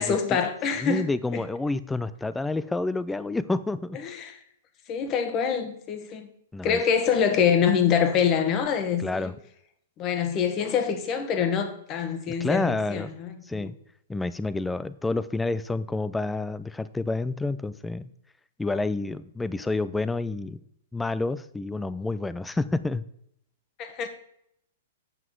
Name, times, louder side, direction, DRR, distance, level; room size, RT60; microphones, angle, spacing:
voice 1, 0.0-1.0 1.3-1.4 4.0-4.4 4.9-6.3 6.6-9.3 10.0-13.7 23.8-24.1, left 7 dB, 35° left, 1.2 m, -25 dB
voice 2, 0.7-4.2 6.5-6.8 9.0-9.3 12.3-13.1 13.5-13.8 14.1-18.1 18.6-20.6 20.9-23.0, left 2 dB, 5° left, 0.4 m, -29 dB
7.9 x 5.9 x 4.6 m
hypercardioid pair, 135°, 0 cm